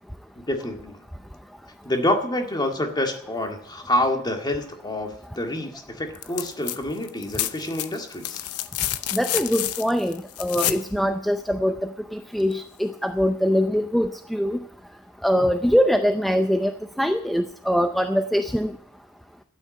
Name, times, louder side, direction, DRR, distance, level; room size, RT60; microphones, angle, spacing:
voice 1, 0.4-1.0 1.8-8.4, left 1 dB, 20° left, 4 dB, 2.0 m, -27 dB
sound 1, 6.2-6.8 7.0-10.9 12.5-12.6, left 13 dB, 80° left, 0.8 m, -29 dB
voice 2, 9.1-14.6 15.2-16.7 17.0-18.7, equal, ahead, 8 dB, 0.5 m, -23 dB
12.5 x 9.4 x 8.5 m, 0.66 s
head